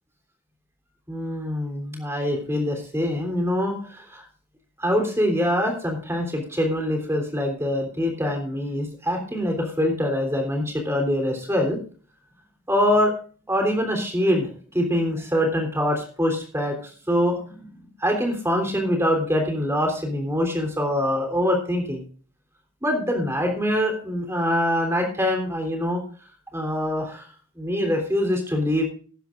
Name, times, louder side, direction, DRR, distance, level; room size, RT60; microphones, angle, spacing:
voice 1, 1.1-4.2 4.8-11.8 12.7-13.1 13.5-16.8 17.1-17.7 18.0-22.0 22.8-26.0 26.5-27.3 27.6-28.8, equal, 10° right, 2 dB, 3.4 m, -24 dB
19.5 x 10.5 x 2.5 m, 0.42 s
head